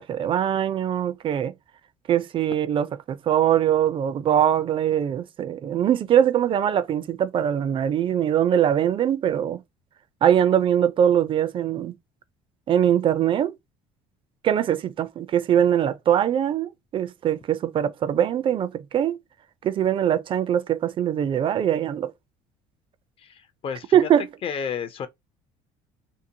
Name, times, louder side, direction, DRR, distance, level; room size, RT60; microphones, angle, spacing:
voice 1, 0.0-1.5 2.1-9.6 10.2-11.9 12.7-13.5 14.4-19.2 19.6-22.1 23.9-24.3, right 10 dB, 40° right, 0.4 m, -22 dB
voice 2, 23.2-24.1 24.4-25.1, left 7 dB, 40° left, 0.4 m, -32 dB
2.6 x 2.1 x 2.7 m
supercardioid pair, 100°, 14 cm